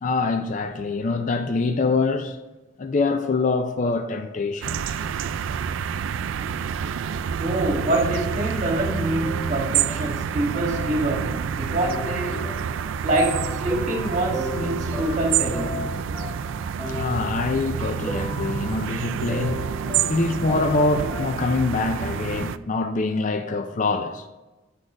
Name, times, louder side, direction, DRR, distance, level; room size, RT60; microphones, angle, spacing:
voice 1, 0.0-2.4 2.8-5.0 16.9-19.7 20.1-24.3, left 3 dB, 40° left, 0.4 m, -24 dB
sound 1, 4.6-22.6, right 7 dB, 70° right, 0.3 m, -28 dB
voice 2, 7.4-12.6 13.0-15.8, right 1 dB, 35° right, 1.5 m, -26 dB
sound 2, 9.2-11.4 11.8-21.6, left 1 dB, 5° left, 1.4 m, -36 dB
9.7 x 4.2 x 4.9 m
head